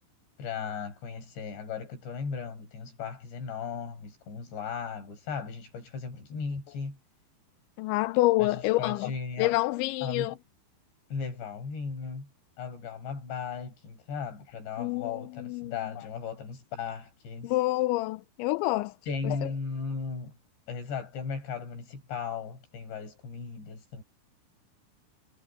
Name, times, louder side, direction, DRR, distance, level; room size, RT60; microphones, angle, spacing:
voice 1, 0.4-7.0 8.4-9.6 10.0-10.3 11.1-12.3 12.6-17.5 19.1-20.4 20.7-24.0, left 5 dB, 65° left, 8.3 m, -36 dB
voice 2, 7.8-9.1 9.4-10.3 14.8-15.7 17.4-18.9 19.2-19.4, left 19 dB, 80° left, 3.0 m, -27 dB
omnidirectional pair, 5.5 m